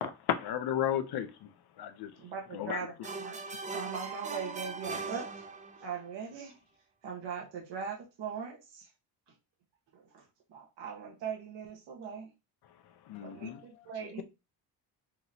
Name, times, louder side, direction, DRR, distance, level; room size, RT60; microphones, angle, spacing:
voice 1, 0.0-1.5 1.8-2.1 2.5-2.8 13.1-13.6, left 10 dB, 60° left, 0.7 m, -33 dB
voice 2, 2.2-3.4 3.7-5.4 5.8-6.5 7.0-8.8 9.9-10.2 10.5-12.3 13.2-14.2, right 6 dB, 70° right, 1.4 m, -40 dB
sound 1, 3.0-6.0, right 4 dB, 20° right, 0.3 m, -40 dB
voice 3, 13.3-14.2, left 14 dB, 90° left, 0.8 m, -49 dB
5.9 x 2.9 x 2.7 m
cardioid pair, 150°, 45 cm